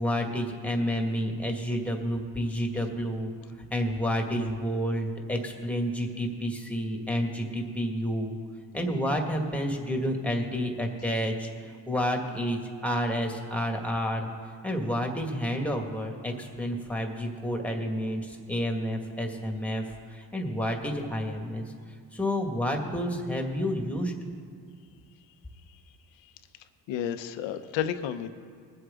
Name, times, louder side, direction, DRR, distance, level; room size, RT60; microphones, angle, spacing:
voice 1, 0.0-3.3 3.7-8.4 8.7-14.3 14.6-21.6 22.1-24.1, equal, 5° left, 2 dB, 1.9 m, -30 dB
voice 2, 26.9-28.3, left 9 dB, 80° left, 10 dB, 0.9 m, -31 dB
21.5 x 7.9 x 3.7 m, 2.2 s
cardioid pair, 85°, 44 cm